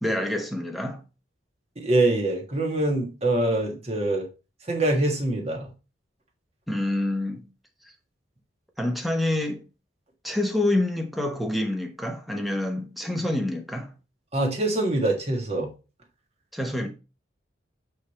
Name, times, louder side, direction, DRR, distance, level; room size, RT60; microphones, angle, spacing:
voice 1, 0.0-1.0 6.7-7.5 8.8-9.7 10.2-13.9 16.5-16.9, left 1 dB, ahead, 0.9 m, -27 dB
voice 2, 1.8-4.3 4.7-5.7 14.3-15.7, right 2 dB, 30° right, 1.6 m, -24 dB
8.1 x 3.3 x 4.2 m
head